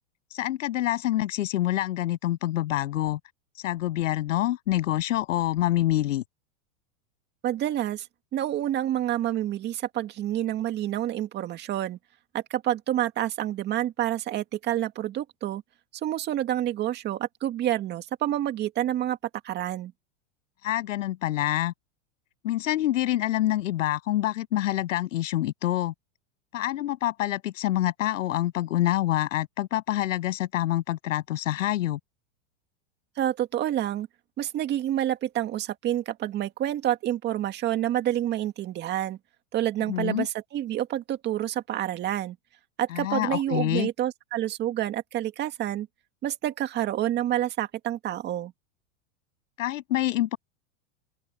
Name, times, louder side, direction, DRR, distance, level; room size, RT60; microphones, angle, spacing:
voice 1, 0.3-3.2 3.6-6.2 20.6-21.7 22.4-25.9 26.5-32.0 39.9-40.3 42.9-43.9 49.6-50.4, left 14 dB, 80° left, 7.6 m, -26 dB
voice 2, 7.4-8.1 8.3-12.0 12.3-15.6 16.0-19.2 19.4-19.9 33.2-34.1 34.4-39.2 39.5-42.4 42.8-45.9 46.2-48.5, right 12 dB, 25° right, 2.0 m, -28 dB
open air
supercardioid pair, 155°, 38 cm